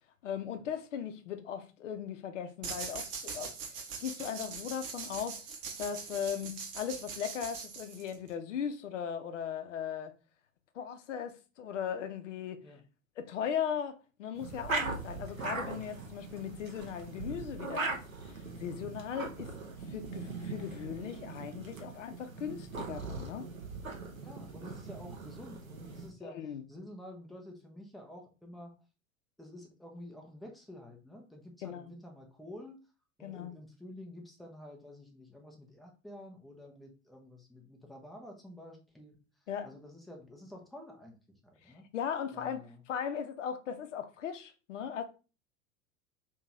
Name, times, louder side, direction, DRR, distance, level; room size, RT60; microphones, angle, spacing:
voice 1, 0.2-3.5 4.0-5.4 5.8-10.1 10.7-12.6 13.2-19.5 19.9-23.5 26.2-26.6 31.6-31.9 33.2-33.6 39.5-39.7 41.7-42.6 42.9-45.0, left 8 dB, 60° left, 0.7 m, -38 dB
sound 1, 2.6-8.3, right 5 dB, 45° right, 0.8 m, -42 dB
sound 2, 14.3-26.1, right 3 dB, 80° right, 0.8 m, -40 dB
voice 2, 24.1-28.7 29.4-32.8 33.2-39.2 39.6-41.9 42.3-42.8, left 1 dB, ahead, 0.5 m, -50 dB
2.9 x 2.8 x 3.5 m
figure-of-eight pair, 85°, 41 cm